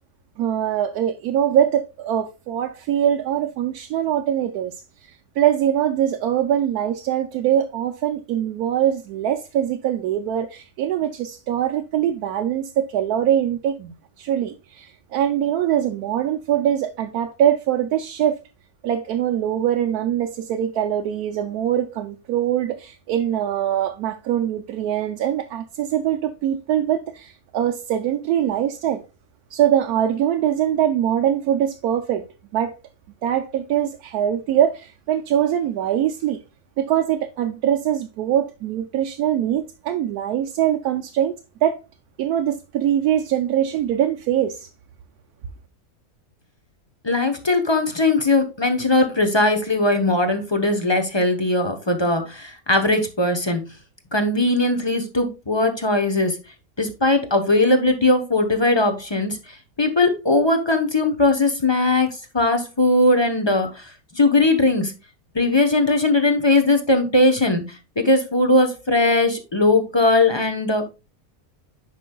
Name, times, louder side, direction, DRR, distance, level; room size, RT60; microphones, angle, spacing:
voice 1, 0.4-4.8 5.0-18.4 18.8-29.0 29.5-32.3 32.5-32.7 33.2-36.4 36.8-41.3 41.6-41.8 42.2-44.7, right 10 dB, 85° right, 1.1 m, -22 dB
voice 2, 47.0-53.6 54.1-56.4 56.8-64.9 65.3-70.8, left 2 dB, 20° left, 0.8 m, -19 dB
9.5 x 5.3 x 2.3 m
omnidirectional pair, 1.6 m